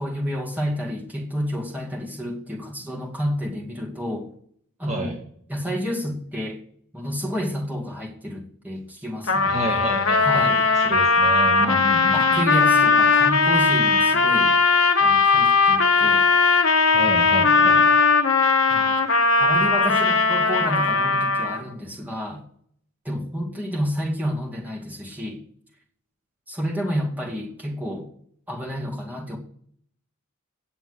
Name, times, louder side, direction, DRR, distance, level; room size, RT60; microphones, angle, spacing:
voice 1, 0.0-4.3 4.8-5.2 5.5-6.6 6.9-9.7 10.2-10.6 11.6-11.8 12.1-14.6 15.0-16.2 17.3-17.8 18.7-19.0 19.4-22.4 23.0-25.4 26.5-28.1 28.5-29.4, equal, 5° right, -2 dB, 2.3 m, -30 dB
Trumpet, 9.3-21.7, left 4 dB, 60° left, 1.3 m, -18 dB
voice 2, 9.5-12.2 16.9-17.9, right 1 dB, 30° right, -1 dB, 1.7 m, -30 dB
9.8 x 7.7 x 7.9 m, 0.63 s
head